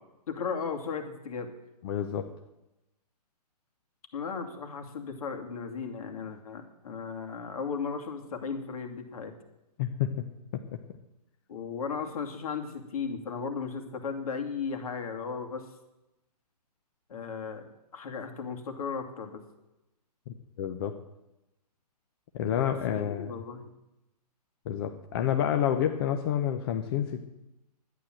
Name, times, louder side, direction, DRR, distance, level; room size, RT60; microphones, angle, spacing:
voice 1, 0.3-1.5 4.1-9.3 11.5-15.7 17.1-19.4 22.9-23.7, left 5 dB, 60° left, 4 dB, 2.5 m, -36 dB
voice 2, 1.8-2.3 9.8-10.3 20.3-20.9 22.3-23.3 24.7-27.2, left 10 dB, 35° left, 6 dB, 0.8 m, -29 dB
11.5 x 10.0 x 7.7 m, 0.93 s
hypercardioid pair, 150°, 21 cm